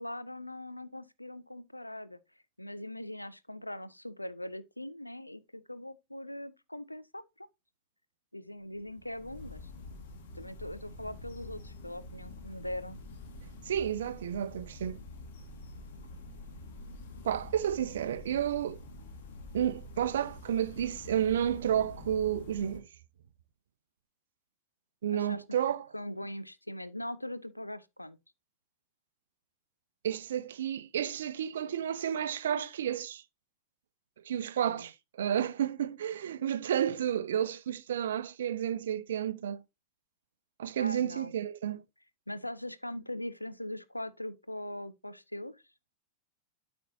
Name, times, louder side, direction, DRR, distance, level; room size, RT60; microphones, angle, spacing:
voice 1, 0.0-2.2 2.6-7.5 8.3-9.7 10.3-13.0 25.1-25.4 25.9-28.2 34.6-34.9 40.8-41.3 42.3-45.6, left 1 dB, 85° left, 0.5 m, -41 dB
sound 1, 8.7-22.8, left 2 dB, 55° left, 1.5 m, -47 dB
voice 2, 13.6-15.0 17.2-18.8 19.5-22.9 25.0-25.9 30.0-33.2 34.2-39.6 40.6-41.8, right 9 dB, 60° right, 0.5 m, -31 dB
12.5 x 4.4 x 2.7 m
figure-of-eight pair, 90°, 0 cm